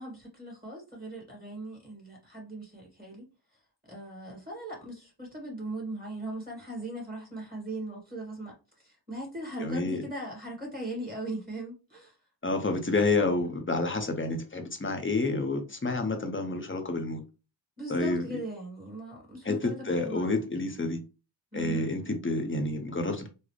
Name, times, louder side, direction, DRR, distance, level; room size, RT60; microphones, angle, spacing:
voice 1, 0.0-3.3 3.9-8.5 8.8-12.2 17.8-20.4 21.5-21.9, right 1 dB, 20° right, 1.8 m, -39 dB
voice 2, 9.6-10.0 12.4-17.2 17.9-18.3 19.4-21.0 21.5-23.3, left 2 dB, 25° left, 0.8 m, -29 dB
4.0 x 2.1 x 3.1 m
wide cardioid pair, 45°, 46 cm